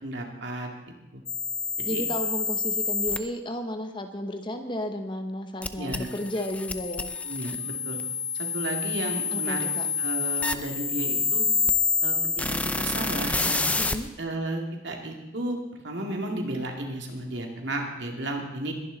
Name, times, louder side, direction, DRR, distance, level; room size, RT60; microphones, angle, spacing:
voice 1, 0.0-0.7 1.1-1.2 1.8-2.0 5.8-6.1 7.2-8.0 8.3-9.7 10.0-11.4 12.0-12.1 12.5-13.6 14.2-15.6 15.8-18.7, right 1 dB, 65° right, 2 dB, 2.4 m, -33 dB
sound 1, 1.3-3.2 5.6-14.0, left 4 dB, 5° left, 0.5 m, -28 dB
voice 2, 1.9-7.1 9.3-9.9 13.8-14.1, left 1 dB, 25° left, 6 dB, 0.9 m, -33 dB
21.5 x 11.0 x 4.0 m, 1.0 s
head